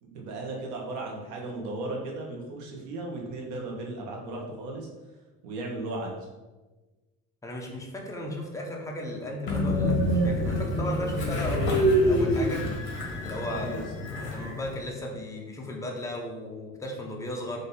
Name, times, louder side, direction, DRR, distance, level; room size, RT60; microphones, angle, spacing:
voice 1, 0.0-4.9 5.4-6.2 13.5-13.8, right 2 dB, 75° right, 0 dB, 1.0 m, -36 dB
voice 2, 7.4-12.6 13.2-17.6, left 1 dB, 10° left, 0 dB, 0.6 m, -35 dB
Train, 9.5-14.8, equal, 40° left, 1.2 m, -26 dB
3.8 x 2.7 x 4.0 m, 1.2 s
cardioid pair, 140°, 30 cm